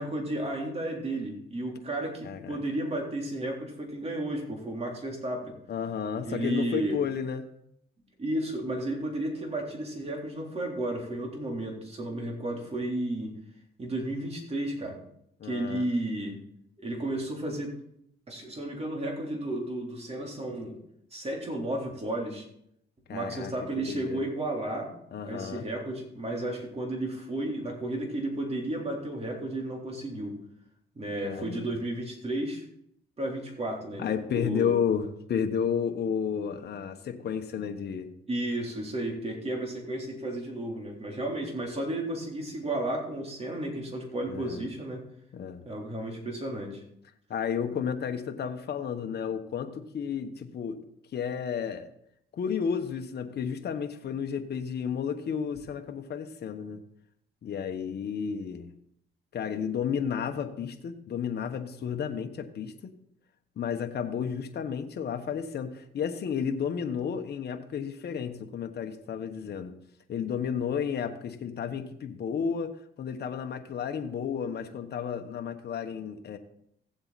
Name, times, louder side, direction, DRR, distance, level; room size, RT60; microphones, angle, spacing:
voice 1, 0.0-5.5 6.2-7.0 8.2-13.4 13.8-15.0 15.4-16.4 16.8-17.8 18.3-20.8 21.1-22.5 23.1-24.9 25.2-30.4 31.0-32.7 33.2-34.7 38.3-45.0 45.6-46.8, right 1 dB, 30° right, 0 dB, 3.7 m, -33 dB
voice 2, 2.2-2.6 5.7-7.5 15.4-15.9 23.1-24.2 25.1-25.6 31.2-31.7 34.0-38.1 44.3-44.7 45.3-45.6 47.3-50.8 51.1-51.9 52.3-56.8 57.4-58.7 59.3-62.9 63.6-69.7 70.1-72.7 73.0-76.4, left 7 dB, 55° left, 5 dB, 1.2 m, -32 dB
16.0 x 7.9 x 4.1 m, 0.74 s
cardioid pair, 90°, 20 cm